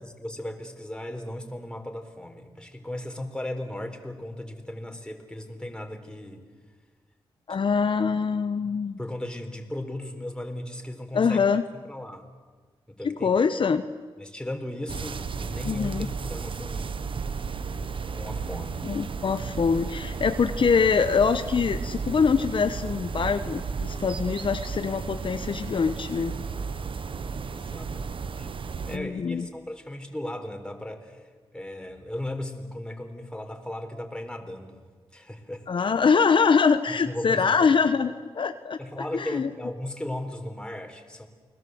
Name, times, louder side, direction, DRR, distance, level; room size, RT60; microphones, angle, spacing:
voice 1, 0.0-6.4 9.0-11.4 11.9-12.3 12.9-13.3 14.2-17.1 18.1-18.9 27.5-28.5 28.8-31.2 31.5-34.8 35.1-35.7 36.9-37.8 38.8-41.3, left 1 dB, 10° left, 4 dB, 4.1 m, -36 dB
voice 2, 7.5-9.0 11.1-11.6 13.0-13.8 15.6-16.1 18.8-26.3 28.9-29.5 35.7-38.8 39.1-39.5, left 5 dB, 60° left, 9 dB, 1.0 m, -24 dB
sound 1, 14.9-29.0, right 5 dB, 60° right, 1.1 m, -34 dB
29.5 x 20.5 x 7.9 m, 1.5 s
cardioid pair, 65°, 10 cm